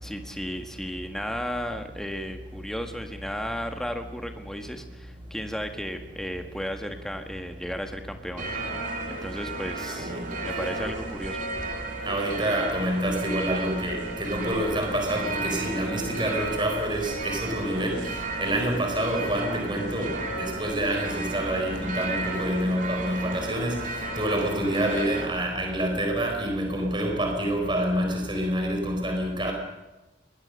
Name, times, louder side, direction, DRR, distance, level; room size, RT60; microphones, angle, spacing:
voice 1, 0.0-8.5 9.1-10.1 10.4-11.5 23.2-23.5, equal, 5° left, 5 dB, 1.6 m, -34 dB
sound 1, 8.4-25.3, right 2 dB, 45° right, 3.2 m, -33 dB
voice 2, 12.0-18.1 18.4-23.8 24.2-29.5, right 1 dB, 25° right, 2 dB, 4.3 m, -27 dB
22.5 x 20.0 x 6.6 m, 1.0 s
head